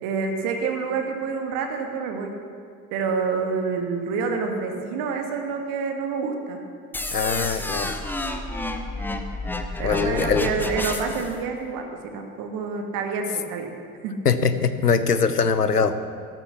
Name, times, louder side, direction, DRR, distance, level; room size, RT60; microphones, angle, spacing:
voice 1, 0.0-2.4 2.9-6.7 9.8-13.7 14.0-14.3, right 5 dB, 45° right, 4 dB, 1.9 m, -28 dB
sound 1, 6.9-11.3, left 2 dB, 5° left, 0.9 m, -30 dB
voice 2, 7.1-7.9 9.8-10.5 14.2-15.9, left 5 dB, 90° left, 11 dB, 0.8 m, -22 dB
12.5 x 12.5 x 5.9 m, 2.2 s
figure-of-eight pair, 75°, 45 cm